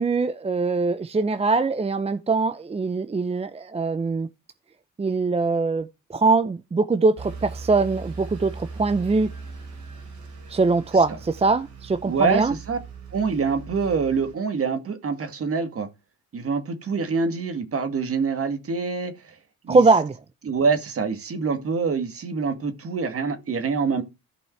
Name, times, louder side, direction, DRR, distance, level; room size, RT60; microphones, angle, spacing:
voice 1, 0.0-4.3 5.0-9.3 10.5-12.5 19.7-20.1, right 3 dB, 20° right, 0.6 m, -22 dB
sound 1, 7.2-14.4, right 4 dB, 70° right, 3.3 m, -39 dB
voice 2, 12.0-12.8 13.1-15.9 16.3-19.3 19.6-19.8 20.4-24.0, right 5 dB, 50° right, 2.0 m, -25 dB
14.0 x 5.4 x 4.6 m
cardioid pair, 90°, 30 cm